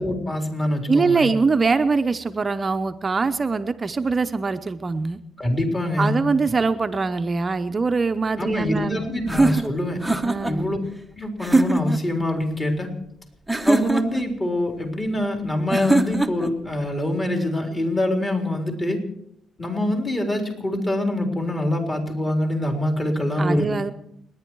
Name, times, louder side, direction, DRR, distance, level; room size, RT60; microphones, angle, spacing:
voice 1, 0.0-1.3 5.4-6.2 8.4-10.0 10.4-10.8 11.1-12.9 13.7-19.0 19.6-23.7, left 1 dB, 25° left, 2 dB, 3.8 m, -24 dB
voice 2, 0.9-5.2 6.0-9.0 10.2-10.7 23.4-23.9, right 4 dB, 30° right, 9 dB, 0.7 m, -23 dB
sound 1, 9.3-10.6 11.4-12.0 13.5-14.3 15.7-16.5, right 2 dB, 5° right, 0.9 m, -21 dB
29.5 x 10.5 x 4.7 m, 0.75 s
cardioid pair, 105°, 0 cm